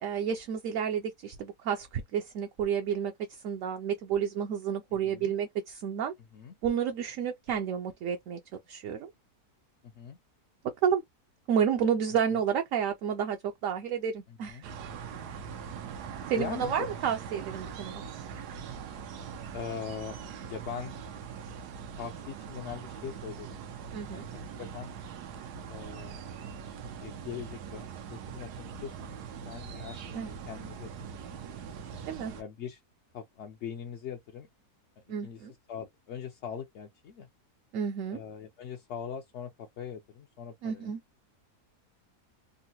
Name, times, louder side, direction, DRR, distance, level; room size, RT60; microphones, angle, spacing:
voice 1, 0.0-6.1 6.6-8.4 8.7-9.1 10.8-11.0 11.5-14.6 16.3-18.0 23.9-24.3 30.1-30.4 32.1-32.3 35.1-35.5 37.7-38.2 40.6-41.0, right 8 dB, 70° right, 0.8 m, -30 dB
voice 2, 4.9-5.3 6.3-6.6 9.8-10.2 14.3-14.6 16.3-16.9 19.5-20.2 20.5-20.9 22.0-23.6 24.1-24.9 25.7-26.4 27.0-29.2 29.4-31.6 32.4-32.8 33.1-34.5 35.0-37.3 38.1-41.0, left 8 dB, 65° left, 0.7 m, -42 dB
sound 1, 14.6-32.4, right 7 dB, 90° right, 1.2 m, -42 dB
3.7 x 2.1 x 2.7 m
omnidirectional pair, 1.6 m